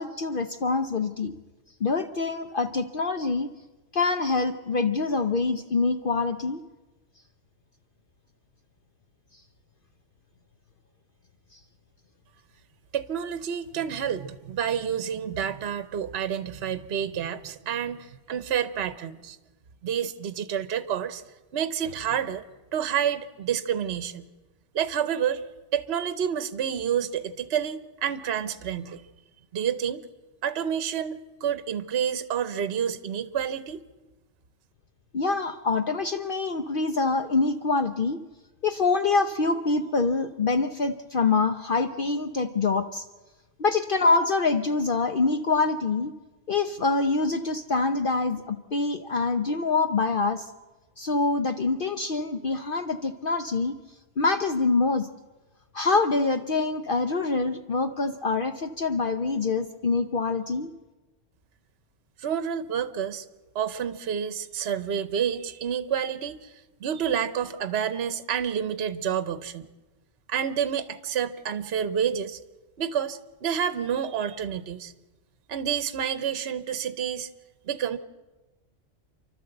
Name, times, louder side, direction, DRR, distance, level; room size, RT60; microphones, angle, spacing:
voice 1, 0.0-1.3 1.8-3.5 3.9-6.6 35.1-38.2 38.6-43.0 43.6-46.1 46.5-50.5 51.0-53.8 54.2-55.1 55.7-60.7, left 3 dB, 50° left, 8 dB, 0.9 m, -25 dB
voice 2, 12.9-19.4 19.8-21.2 21.5-22.4 22.7-24.3 24.7-25.4 25.7-29.0 29.5-30.1 30.4-33.8 62.2-63.3 63.5-66.5 66.8-69.7 70.3-72.4 72.8-74.9 75.5-77.3 77.6-78.0, right 8 dB, 60° right, 13 dB, 1.0 m, -29 dB
28.5 x 12.5 x 7.8 m, 1.2 s
omnidirectional pair, 1.3 m